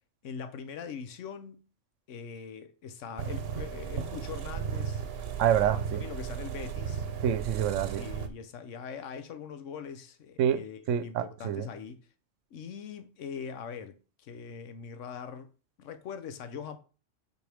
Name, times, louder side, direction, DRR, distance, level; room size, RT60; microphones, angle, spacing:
voice 1, 0.2-1.7 2.1-5.0 5.7-7.1 7.9-12.1 12.5-15.5 15.8-16.8, left 6 dB, 75° left, 1.2 m, -42 dB
sound 1, 3.2-8.3, right 7 dB, 55° right, 1.0 m, -35 dB
voice 2, 5.4-6.0 7.2-8.0 10.4-11.7, right 10 dB, 80° right, 1.0 m, -27 dB
7.8 x 4.7 x 3.4 m
omnidirectional pair, 1.3 m